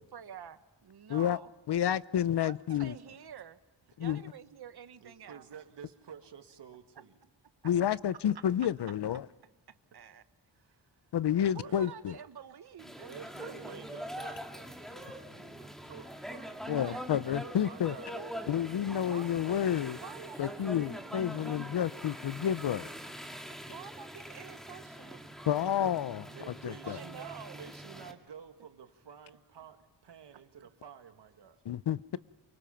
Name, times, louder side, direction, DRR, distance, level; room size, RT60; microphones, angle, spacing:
voice 1, 0.0-1.5 2.4-3.6 4.0-5.4 9.7-10.2 11.5-13.9 16.7-17.6 18.1-18.4 19.0-19.6 20.0-21.5 21.9-22.1 23.7-25.4 26.6-27.6, right 8 dB, 65° right, 1.2 m, -49 dB
voice 2, 1.7-2.9 4.0-4.2 7.6-9.3 11.1-12.1 16.7-17.9 18.5-20.0 20.4-22.9 25.5-26.3 26.6-27.0 31.7-32.2, left 10 dB, 75° left, 0.7 m, -30 dB
voice 3, 2.7-3.2 5.0-7.2 8.0-9.1 10.5-12.3 13.1-16.6 17.6-18.2 18.4-18.6 19.5-19.7 20.0-20.4 21.3-22.2 23.5-23.7 26.2-31.6, right 7 dB, 85° right, 2.0 m, -52 dB
sound 1, 12.8-28.1, equal, ahead, 1.9 m, -44 dB
28.5 x 24.5 x 5.8 m
wide cardioid pair, 170°, 41 cm